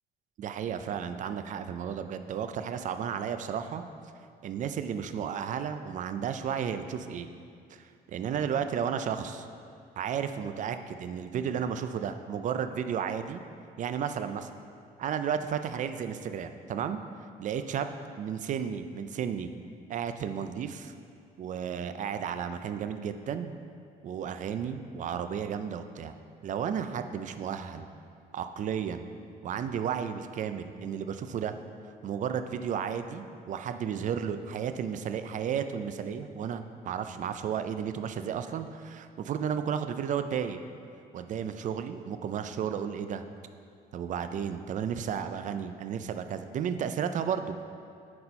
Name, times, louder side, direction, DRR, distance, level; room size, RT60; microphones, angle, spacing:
voice 1, 0.4-3.8 4.4-7.3 8.1-9.5 10.0-13.4 13.8-14.5 15.0-17.0 17.4-19.5 19.9-20.9 21.4-23.5 24.0-26.1 26.4-27.9 28.3-29.1 29.4-31.5 32.0-40.6 41.1-43.2 43.9-47.6, right 8 dB, 50° right, 9 dB, 0.5 m, -33 dB
8.5 x 4.3 x 5.3 m, 2.3 s
cardioid pair, 110°, 17 cm